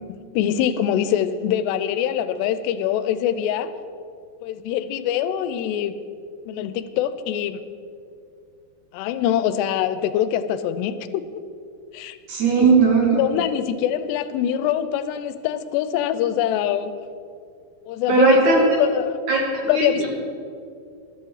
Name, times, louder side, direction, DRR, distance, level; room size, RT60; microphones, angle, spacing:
voice 1, 0.3-3.7 4.4-6.0 6.5-7.6 8.9-11.2 11.9-12.2 12.6-12.7 13.1-16.9 17.9-18.4 18.8-19.2 19.7-20.1, left 10 dB, 85° left, 13 dB, 2.7 m, -24 dB
voice 2, 12.3-13.2 18.1-18.6 19.3-20.1, right 4 dB, 55° right, -1 dB, 2.7 m, -17 dB
13.5 x 12.5 x 4.8 m, 2.4 s
omnidirectional pair, 4.9 m